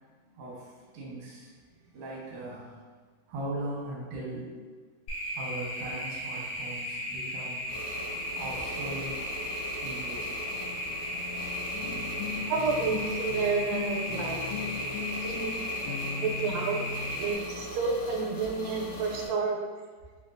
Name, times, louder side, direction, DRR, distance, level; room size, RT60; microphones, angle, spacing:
voice 1, 0.2-2.8 3.3-4.5 5.3-7.8 8.4-9.2 9.8-10.3 10.6-10.8 18.4-18.5, right 1 dB, 70° right, -5 dB, 1.2 m, -39 dB
sound 1, 5.1-17.3, equal, 75° left, 1.3 m, -35 dB
sound 2, 7.7-19.3, left 1 dB, 55° left, 1.6 m, -41 dB
sound 3, 11.7-17.2, left 6 dB, 90° left, 1.6 m, -38 dB
voice 2, 12.5-14.6 15.2-16.9 17.2-19.6, right 4 dB, 85° right, 1 dB, 2.2 m, -31 dB
5.1 x 2.3 x 2.5 m, 1.5 s
omnidirectional pair, 3.7 m